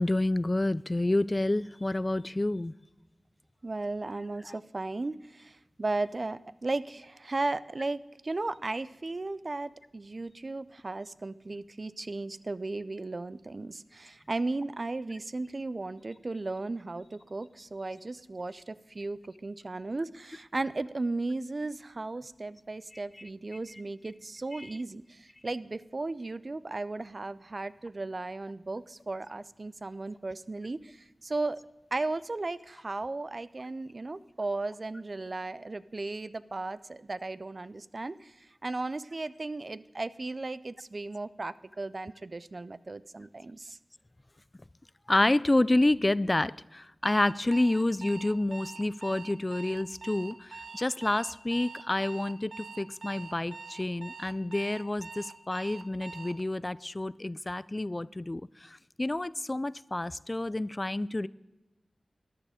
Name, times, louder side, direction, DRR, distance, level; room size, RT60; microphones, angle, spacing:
voice 1, 0.0-2.7 4.4-4.6 22.9-23.0 23.7-23.8 24.5-24.7 45.1-61.3, left 1 dB, 30° left, 19 dB, 0.3 m, -29 dB
voice 2, 3.6-31.0 31.2-31.6 31.9-38.3 38.6-43.8, right 2 dB, 45° right, 16 dB, 0.4 m, -35 dB
Alarm, 47.0-56.4, right 4 dB, 75° right, 0.8 m, -45 dB
13.5 x 10.0 x 5.0 m, 1.0 s
cardioid pair, 50°, 0 cm